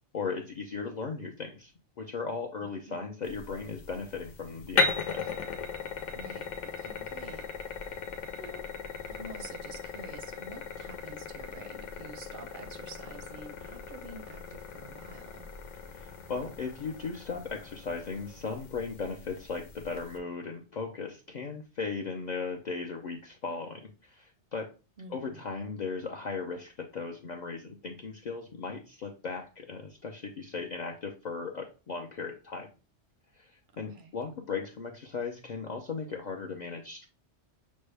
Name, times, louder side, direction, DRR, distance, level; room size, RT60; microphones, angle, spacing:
voice 1, 0.1-1.7 2.0-5.3 15.9-24.7 25.1-32.7 33.3-37.1, left 4 dB, 55° left, 0.5 m, -37 dB
sound 1, 3.2-20.2, left 4 dB, 90° left, 1.1 m, -37 dB
voice 2, 6.2-7.5 8.4-8.7 9.1-15.5 25.0-25.4 33.7-34.1, right 3 dB, 60° right, 0.5 m, -48 dB
6.1 x 2.1 x 3.2 m
omnidirectional pair, 1.2 m